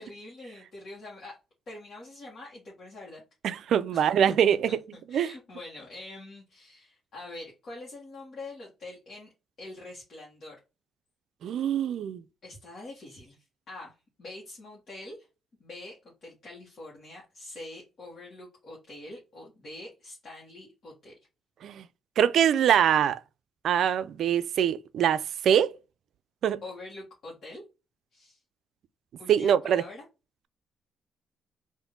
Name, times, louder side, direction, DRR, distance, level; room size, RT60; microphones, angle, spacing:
voice 1, 0.0-1.4 1.7-3.2 3.9-4.1 4.7-9.3 9.6-10.6 12.4-13.4 13.7-15.3 15.6-21.1 26.6-27.6 28.1-28.4 29.2-30.0, left 2 dB, 55° left, 1.4 m, -44 dB
voice 2, 3.4-4.7 5.1-5.3 11.4-12.2 21.6-21.8 22.2-23.2 23.6-25.8 26.4-26.6 29.3-29.8, right 9 dB, 70° right, 0.3 m, -23 dB
3.6 x 2.6 x 3.5 m
cardioid pair, 90°, 0 cm